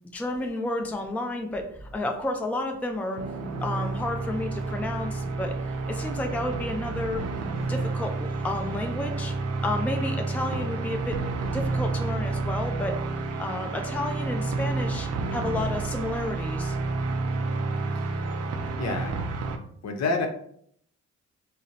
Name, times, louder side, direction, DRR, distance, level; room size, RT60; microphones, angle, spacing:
voice 1, 0.1-3.2 3.6-7.2 7.7-9.3 9.6-11.2 11.5-12.9 13.4-16.8, left 2 dB, 5° left, 4 dB, 0.4 m, -31 dB
sound 1, 3.1-19.6, right 3 dB, 55° right, 0.5 m, -30 dB
voice 2, 18.8-19.2 19.8-20.3, left 3 dB, 60° left, 3 dB, 0.7 m, -28 dB
3.7 x 2.0 x 2.7 m, 0.65 s
supercardioid pair, 60°, 31 cm